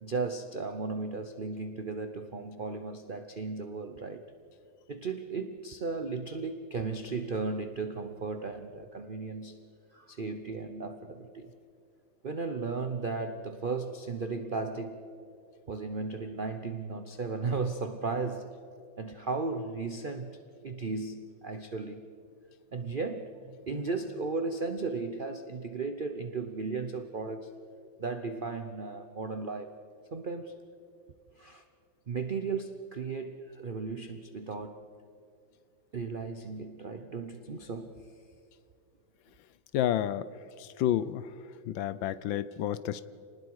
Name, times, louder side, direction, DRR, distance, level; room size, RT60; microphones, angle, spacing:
voice 1, 0.0-4.2 4.9-9.6 9.9-11.5 12.2-15.1 15.7-18.5 19.0-20.3 20.6-22.0 22.7-27.6 28.0-29.8 30.1-30.6 31.4-31.6 32.1-34.8 35.9-38.0 42.3-42.4, right 4 dB, 75° right, 7 dB, 0.4 m, -35 dB
voice 2, 39.7-40.3 40.6-41.3 41.7-43.1, left 11 dB, 75° left, 16 dB, 1.3 m, -30 dB
28.0 x 20.0 x 4.8 m, 2.5 s
omnidirectional pair, 2.2 m